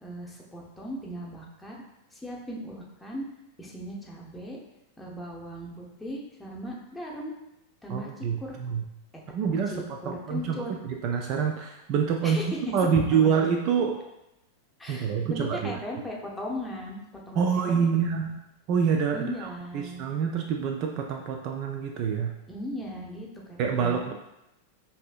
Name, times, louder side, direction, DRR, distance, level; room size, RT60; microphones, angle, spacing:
voice 1, 0.0-1.7 2.1-3.2 3.6-4.6 5.0-7.3 7.8-8.6 9.1-10.8 12.2-12.6 12.9-13.4 14.8-17.0 17.3-18.0 19.1-20.0 22.5-24.1, equal, 5° left, -3 dB, 0.8 m, -38 dB
voice 2, 7.9-8.8 9.3-10.6 10.9-12.4 12.7-14.0 14.9-15.8 17.4-18.4 18.7-22.3 23.6-24.1, right 6 dB, 40° right, 2 dB, 0.3 m, -26 dB
5.4 x 2.7 x 2.4 m, 0.90 s
figure-of-eight pair, 90°, 0 cm